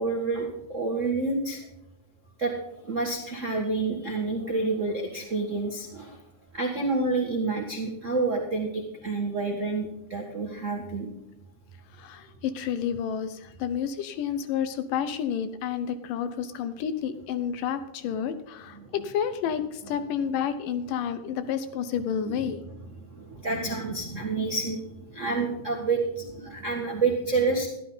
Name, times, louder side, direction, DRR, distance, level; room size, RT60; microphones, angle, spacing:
voice 1, 0.0-1.6 2.4-2.5 2.9-6.2 6.5-11.1 18.8-18.9 22.2-22.4 23.1-27.7, right 3 dB, 45° right, -1 dB, 0.9 m, -28 dB
voice 2, 12.0-22.6, left 8 dB, 75° left, 11 dB, 2.2 m, -30 dB
13.5 x 11.5 x 3.9 m, 0.90 s
omnidirectional pair, 4.3 m